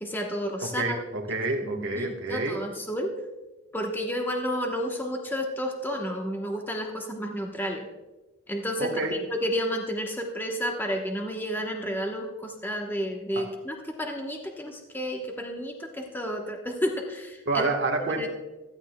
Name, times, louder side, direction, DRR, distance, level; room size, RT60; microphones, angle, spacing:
voice 1, 0.0-1.0 1.6-3.1 3.7-7.8 8.5-17.7 18.2-18.3, equal, 10° left, 1 dB, 1.0 m, -31 dB
voice 2, 0.6-2.6 8.8-9.2 13.3-13.5 17.5-18.3, right 3 dB, 60° right, 1 dB, 1.2 m, -28 dB
15.5 x 11.5 x 2.2 m, 1.1 s
head